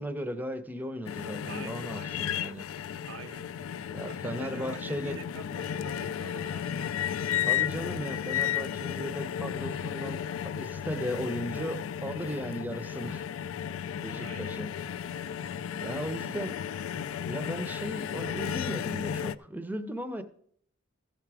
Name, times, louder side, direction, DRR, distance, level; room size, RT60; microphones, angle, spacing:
voice 1, 0.0-2.6 3.9-5.2 7.4-13.2 14.0-14.7 15.8-16.6 17.2-20.2, equal, 10° right, 0.5 m, -36 dB
sound 1, 1.1-19.4, left 9 dB, 80° left, 0.3 m, -34 dB
voice 2, 1.5-2.6 3.1-3.5 4.1-7.2 14.2-14.7 15.8-16.1, right 6 dB, 85° right, 0.5 m, -47 dB
14.5 x 5.8 x 4.7 m
head